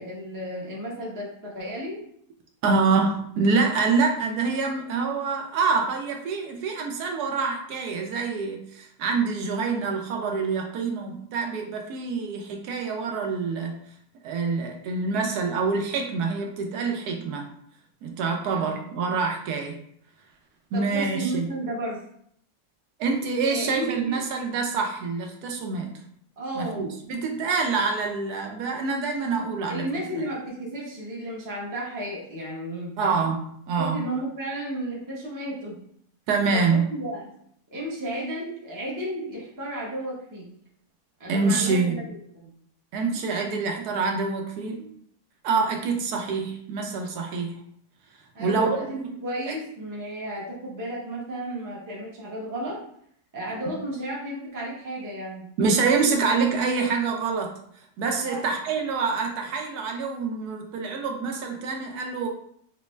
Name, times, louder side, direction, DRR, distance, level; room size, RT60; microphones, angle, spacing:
voice 1, 0.0-2.0 18.5-18.9 20.7-22.0 23.5-24.2 26.4-26.9 29.7-32.9 33.7-35.8 36.5-37.3 37.7-40.5 41.2-42.5 48.3-52.8 53.3-55.4 58.2-58.5, right 1 dB, 20° right, -4 dB, 0.5 m, -33 dB
voice 2, 2.6-13.7 14.2-17.5 18.0-19.7 20.7-21.4 23.0-26.0 26.6-29.8 33.0-34.0 36.3-36.8 41.3-42.1 42.9-44.9 45.4-47.5 48.4-48.8 49.5-49.6 55.6-57.6 58.0-62.3, right 4 dB, 75° right, 2 dB, 1.1 m, -26 dB
4.0 x 2.1 x 3.1 m, 0.67 s
omnidirectional pair, 1.7 m